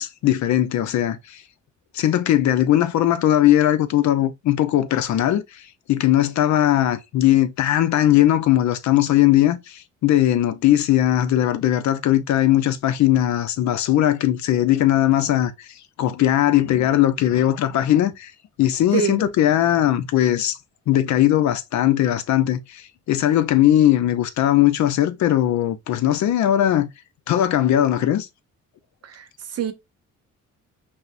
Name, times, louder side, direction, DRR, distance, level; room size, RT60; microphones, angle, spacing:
voice 1, 0.0-1.4 1.9-5.6 5.9-15.5 16.0-18.3 18.6-20.5 20.9-26.9 27.3-28.3, left 12 dB, 70° left, 0.6 m, -19 dB
voice 2, 18.9-19.2 29.0-29.7, right 9 dB, 55° right, 0.8 m, -26 dB
5.5 x 2.1 x 2.5 m
cardioid pair, 90°, 30 cm